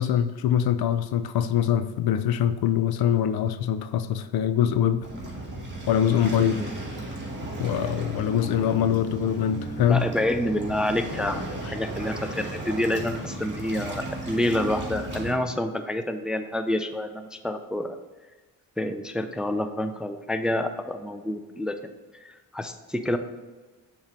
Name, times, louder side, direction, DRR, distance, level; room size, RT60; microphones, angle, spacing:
voice 1, 0.0-5.1 5.9-6.6 7.6-10.1, left 9 dB, 60° left, 0.5 m, -23 dB
Waves surf, 5.0-15.3, right 1 dB, 25° right, 2.0 m, -35 dB
voice 2, 6.4-6.7 9.8-18.0 18.8-21.9 22.2-23.2, left 1 dB, ahead, 0.4 m, -28 dB
7.1 x 3.1 x 5.1 m
supercardioid pair, 55°, 42 cm